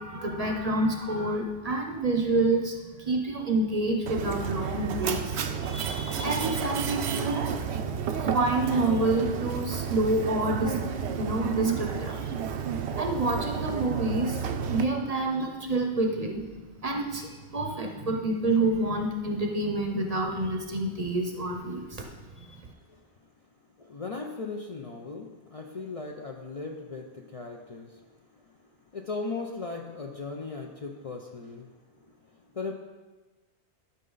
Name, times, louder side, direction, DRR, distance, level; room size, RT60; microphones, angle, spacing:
voice 1, 0.0-7.5 8.1-12.3 13.0-16.5 16.8-22.1 22.4-22.5, right 2 dB, 40° right, 3 dB, 0.7 m, -28 dB
Mechanisms, 4.1-14.8, right 7 dB, 80° right, 0.9 m, -31 dB
voice 2, 23.8-28.1 28.9-31.7 32.1-32.2 32.5-32.7, left 3 dB, 45° left, 1 dB, 0.5 m, -37 dB
11.5 x 5.5 x 3.9 m, 1.2 s
omnidirectional pair, 1.1 m